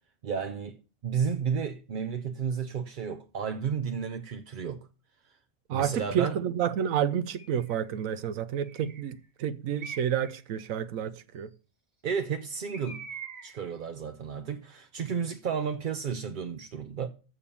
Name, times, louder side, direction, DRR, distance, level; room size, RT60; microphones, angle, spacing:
voice 1, 0.2-0.8 1.0-4.9 5.3-5.4 5.7-6.4 12.0-13.1 13.4-17.1, right 6 dB, 55° right, 0.6 m, -32 dB
voice 2, 5.7-11.5, right 9 dB, 80° right, 1.1 m, -30 dB
Bird, 7.4-7.8 8.6-9.2 9.8-10.4 12.7-13.7, right 6 dB, 30° right, 1.6 m, -44 dB
7.0 x 6.9 x 7.0 m
omnidirectional pair, 1.4 m